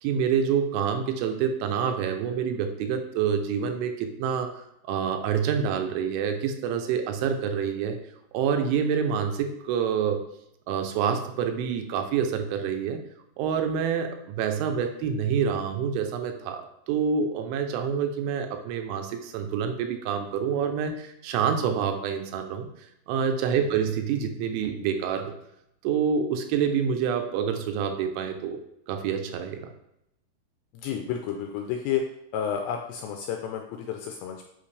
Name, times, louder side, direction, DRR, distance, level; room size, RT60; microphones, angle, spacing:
voice 1, 0.0-4.5 4.9-8.0 8.3-10.2 10.7-13.0 13.4-22.7 23.1-25.3 25.8-28.6 28.9-29.7, right 7 dB, 80° right, 6 dB, 3.1 m, -27 dB
voice 2, 30.7-32.0 32.3-34.5, left 8 dB, 80° left, 3 dB, 2.5 m, -31 dB
8.5 x 6.0 x 3.3 m, 0.81 s
omnidirectional pair, 5.6 m